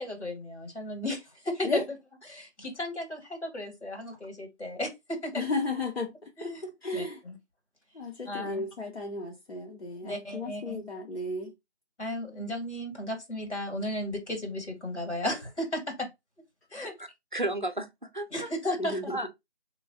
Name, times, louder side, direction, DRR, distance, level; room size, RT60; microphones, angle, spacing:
voice 1, 0.0-1.8 2.3-5.4 6.4-6.6 6.9-7.4 8.3-8.6 10.0-10.8 12.0-16.1 16.7-16.9 18.3-19.1, left 1 dB, 80° left, 2.0 m, -34 dB
voice 2, 5.4-6.5 6.8-7.2 7.9-11.5 18.8-19.2, left 2 dB, 65° left, 0.9 m, -34 dB
voice 3, 17.0-18.5 19.1-19.3, right 1 dB, 45° right, 0.5 m, -33 dB
3.3 x 3.1 x 2.6 m
figure-of-eight pair, 160°, 34 cm